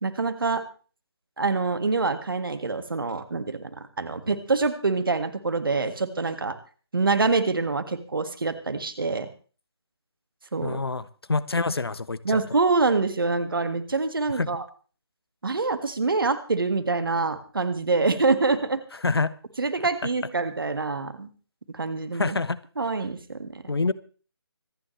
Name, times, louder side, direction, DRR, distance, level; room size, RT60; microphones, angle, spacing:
voice 1, 0.0-0.6 1.4-6.5 6.9-9.3 10.5-10.8 12.2-14.6 15.4-18.8 19.6-21.3 21.7-22.4 22.8-23.5, right 3 dB, 55° right, 1.9 m, -25 dB
voice 2, 10.6-12.4 14.4-14.5 19.0-19.3 22.1-22.6 23.7-23.9, left 3 dB, 65° left, 0.9 m, -26 dB
25.5 x 10.0 x 3.3 m
figure-of-eight pair, 155°, 14 cm